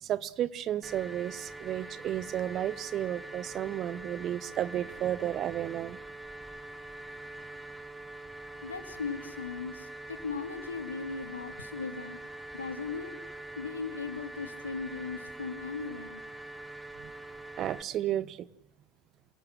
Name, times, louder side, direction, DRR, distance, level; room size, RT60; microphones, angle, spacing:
voice 1, 0.0-6.0 17.0-17.1 17.6-18.5, right 11 dB, 40° right, 18 dB, 1.0 m, -33 dB
sound 1, 0.8-17.8, right 2 dB, 10° right, 2.0 m, -44 dB
voice 2, 8.6-12.2 12.5-13.1 13.6-16.2, left 5 dB, 80° left, 8 dB, 2.9 m, -38 dB
28.0 x 18.0 x 8.1 m, 0.82 s
figure-of-eight pair, 75°, 0 cm